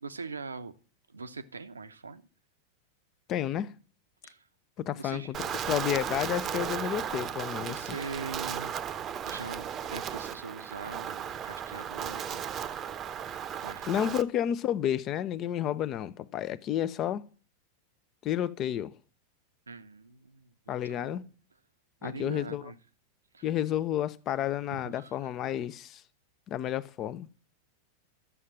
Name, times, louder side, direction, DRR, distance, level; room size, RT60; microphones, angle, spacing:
voice 1, 0.0-0.8 1.1-2.2 4.2-4.5 4.9-5.3 7.6-8.7 9.2-12.5 13.6-14.2 19.7-21.3 22.0-22.8 23.3-23.5 24.7-25.3, right 4 dB, 75° right, 0.8 m, -42 dB
voice 2, 3.3-3.7 4.8-8.0 13.9-17.2 18.2-18.9 20.7-21.2 22.0-22.6 23.4-26.0 26.5-27.3, left 11 dB, 35° left, 0.7 m, -31 dB
Wind, 5.3-14.2, right 8 dB, 30° right, 0.8 m, -35 dB
12.5 x 7.4 x 7.3 m
figure-of-eight pair, 90°, 0 cm